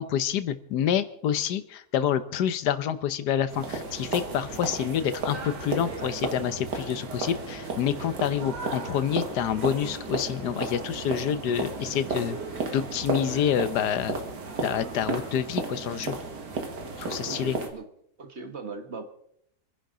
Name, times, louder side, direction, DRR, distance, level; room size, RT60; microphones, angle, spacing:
voice 1, 0.0-12.4 12.7-14.2 14.6-16.2 17.0-17.6, left 9 dB, 80° left, 13 dB, 1.4 m, -27 dB
sound 1, 3.5-17.7, right 3 dB, 90° right, 2.4 m, -33 dB
voice 2, 17.3-17.9 18.2-19.0, right 4 dB, 45° right, 7 dB, 1.5 m, -39 dB
28.0 x 10.5 x 3.8 m, 0.71 s
omnidirectional pair, 1.8 m